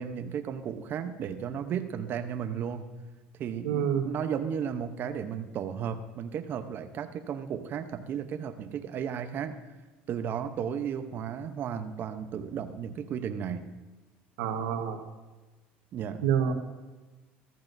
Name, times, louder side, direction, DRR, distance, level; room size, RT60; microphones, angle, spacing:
voice 1, 0.0-2.9 3.4-9.6 10.1-13.6 15.9-16.2, right 8 dB, 50° right, 8 dB, 0.8 m, -34 dB
voice 2, 3.6-4.1 14.4-15.0 16.2-16.5, right 8 dB, 85° right, 5 dB, 1.4 m, -27 dB
14.5 x 14.0 x 2.7 m, 1.2 s
supercardioid pair, 105°, 5 cm